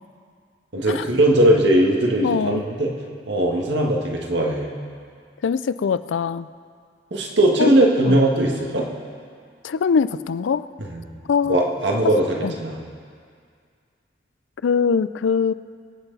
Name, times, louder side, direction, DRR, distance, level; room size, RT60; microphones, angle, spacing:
voice 1, 0.7-2.9 3.3-4.7 7.1-8.9 10.8-11.0 11.4-12.8, right 1 dB, 70° right, -1 dB, 1.8 m, -19 dB
voice 2, 2.2-2.6 5.4-6.5 7.6-7.7 8.1-8.2 9.6-10.7 11.3-11.6 12.4-12.5 14.6-15.5, left 6 dB, 80° left, 15 dB, 0.4 m, -22 dB
23.5 x 8.1 x 4.0 m, 2.2 s
head